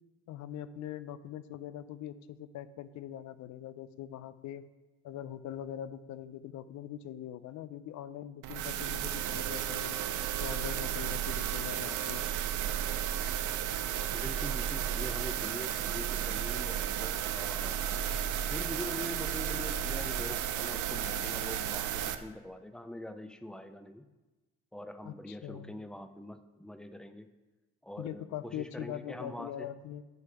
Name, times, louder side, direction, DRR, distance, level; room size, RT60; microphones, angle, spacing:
voice 1, 0.3-4.6 5.0-10.0 10.4-12.2 25.0-25.7 28.0-30.0, left 11 dB, 70° left, 15 dB, 0.5 m, -42 dB
sound 1, 8.4-22.1, right 10 dB, 80° right, 0.5 m, -33 dB
voice 2, 14.1-17.8 18.5-24.1 24.7-27.3 27.8-29.7, left 1 dB, 5° left, 9 dB, 0.4 m, -44 dB
8.2 x 3.4 x 5.6 m, 1.1 s
cardioid pair, 90°, 30 cm